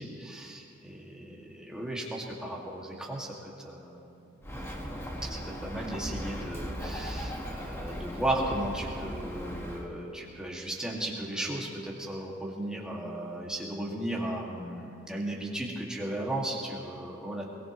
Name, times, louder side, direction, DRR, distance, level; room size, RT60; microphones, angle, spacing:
voice 1, 0.0-4.1 5.2-17.5, right 1 dB, 5° right, -3 dB, 2.0 m, -35 dB
Bird, 4.4-9.9, equal, 15° left, 1.4 m, -37 dB
22.5 x 19.0 x 3.1 m, 2.6 s
head